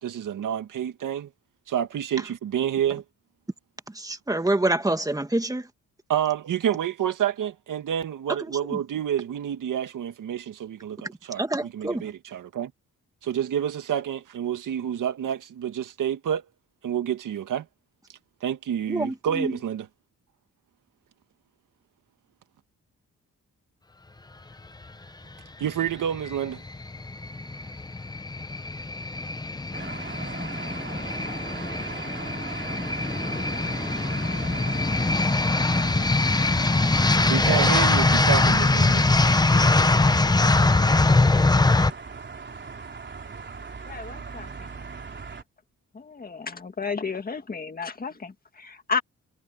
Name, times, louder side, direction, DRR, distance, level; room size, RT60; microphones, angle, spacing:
voice 1, 0.0-1.3 1.7-3.0 6.1-12.7 13.2-16.4 16.8-17.7 18.4-19.9 25.6-26.6 37.3-39.0, right 9 dB, 85° right, 1.9 m, -28 dB
voice 2, 3.9-5.7 8.4-8.8 11.0-12.1 18.9-19.6, right 2 dB, 10° right, 1.7 m, -27 dB
sound 1, 26.1-41.9, left 2 dB, 15° left, 0.7 m, -22 dB
sound 2, 29.7-45.4, right 5 dB, 35° right, 3.9 m, -39 dB
voice 3, 43.9-44.7 45.9-49.0, left 5 dB, 30° left, 1.9 m, -32 dB
cardioid pair, 120°, 31 cm